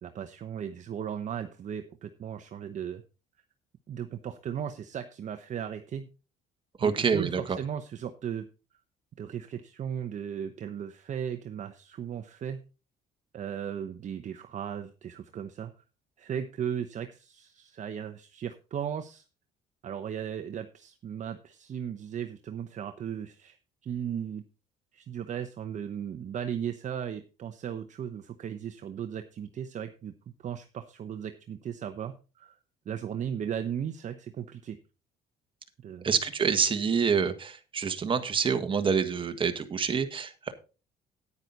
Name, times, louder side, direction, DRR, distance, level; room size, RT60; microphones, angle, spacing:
voice 1, 0.0-3.0 3.9-6.1 6.8-8.5 9.2-12.6 13.3-15.7 16.2-19.2 19.8-23.6 23.8-24.4 24.9-30.1 30.4-32.6 32.9-34.8 35.8-36.2, right 8 dB, 45° right, 8 dB, 0.9 m, -36 dB
voice 2, 6.8-7.6 36.0-40.5, right 6 dB, 30° right, 7 dB, 1.6 m, -27 dB
9.8 x 9.5 x 4.1 m, 0.33 s
cardioid pair, 110°, 17 cm